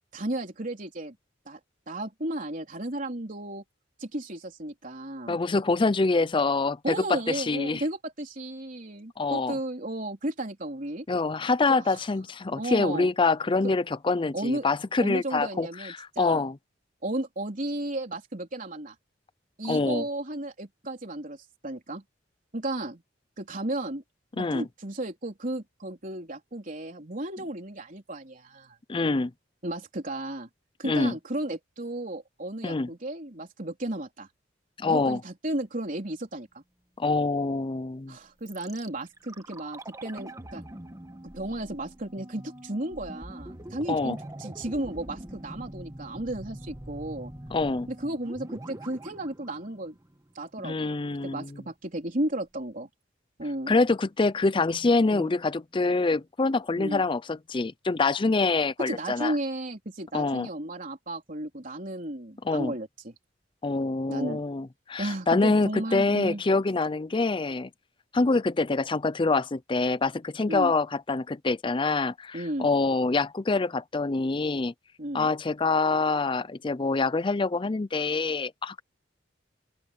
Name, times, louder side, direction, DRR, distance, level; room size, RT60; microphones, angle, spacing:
voice 1, 0.1-1.2 1.5-1.6 1.9-3.6 4.0-5.4 6.8-11.1 11.7-12.0 12.5-13.1 13.6-13.7 14.3-14.7 15.0-16.4 17.0-18.9 19.6-22.0 22.5-23.0 23.4-24.0 24.4-28.8 29.6-30.5 30.8-34.3 34.9-36.6 38.1-40.6 41.3-47.3 47.9-49.9 50.3-52.9 53.4-53.7 55.1-55.3 56.8-57.0 58.8-63.1 64.1-64.4 65.0-66.4 70.5-70.7 72.3-72.7 75.0-75.3, right 1 dB, 45° right, 4.0 m, -34 dB
voice 2, 5.3-7.8 9.2-9.6 11.1-16.6 19.7-20.0 24.4-24.6 28.9-29.3 30.8-31.2 32.6-32.9 34.8-35.2 37.0-38.2 43.9-44.2 47.5-47.9 50.6-51.5 53.7-59.3 60.1-60.5 62.4-62.7 63.6-67.7 68.1-74.7 75.1-78.8, left 3 dB, 25° left, 0.5 m, -25 dB
sound 1, 38.5-50.5 50.7-50.8, right 1 dB, 20° right, 1.5 m, -43 dB
open air
head